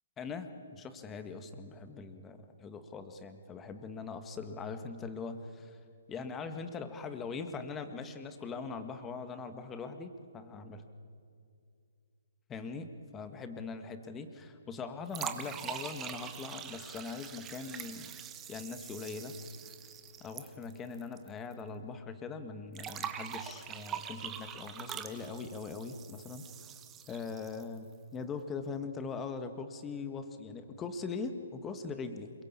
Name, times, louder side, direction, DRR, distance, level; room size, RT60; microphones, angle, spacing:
voice 1, 0.2-5.8 6.1-10.8 12.5-18.2 18.5-19.3 20.2-26.7 27.1-32.3, left 4 dB, 15° left, 8 dB, 1.8 m, -41 dB
sound 1, 15.1-21.3 21.5-21.6 22.8-27.8, right 9 dB, 15° right, 1.4 m, -43 dB
26.5 x 22.5 x 8.6 m, 2.4 s
figure-of-eight pair, 130°, 0 cm